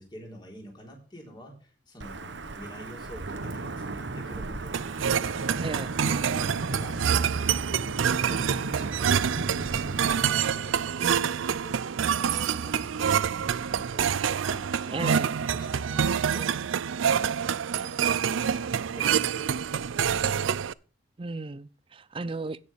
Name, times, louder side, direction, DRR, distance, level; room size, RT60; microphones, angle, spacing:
voice 1, 0.0-5.6 6.0-7.6 8.2-15.1 15.5-16.6 17.0-20.4, equal, 25° left, 3.7 m, -47 dB
Wind / Thunder / Rain, 2.0-10.3, right 2 dB, 65° right, 0.9 m, -35 dB
sound 1, 4.7-20.7, right 8 dB, 85° right, 0.4 m, -27 dB
voice 2, 14.9-15.3 21.2-22.6, right 3 dB, 25° right, 0.5 m, -34 dB
16.5 x 6.4 x 3.4 m
head